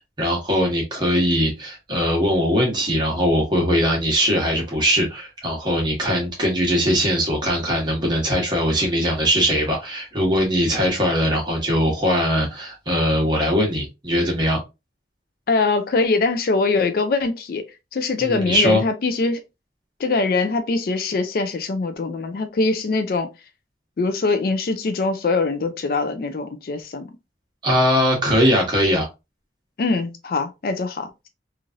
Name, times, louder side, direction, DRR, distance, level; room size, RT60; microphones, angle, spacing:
voice 1, 0.2-14.6 18.2-18.8 27.6-29.1, equal, 25° right, 1.1 m, -21 dB
voice 2, 15.5-17.6 17.9-19.4 20.0-23.3 24.0-27.1 29.8-31.3, left 3 dB, 55° left, 0.4 m, -22 dB
3.1 x 2.4 x 2.5 m
head